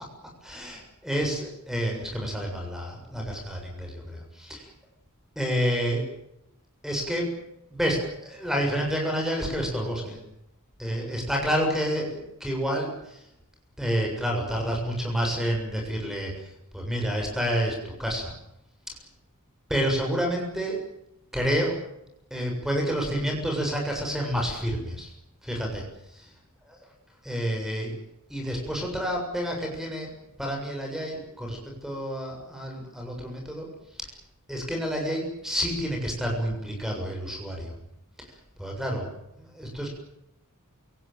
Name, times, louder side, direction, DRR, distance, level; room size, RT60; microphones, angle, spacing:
voice 1, 0.4-4.7 5.4-6.1 6.8-7.3 7.7-10.2 10.8-13.2 13.8-18.3 19.7-20.8 21.3-21.8 22.3-25.1 25.4-25.8 26.1-26.3 26.7-26.8 27.2-27.9 28.3-30.1 30.4-33.7 34.0-34.1 34.5-37.8 38.2-39.1 39.4-39.9, equal, ahead, 0 dB, 7.2 m, -29 dB
28.0 x 18.5 x 9.3 m, 0.83 s
head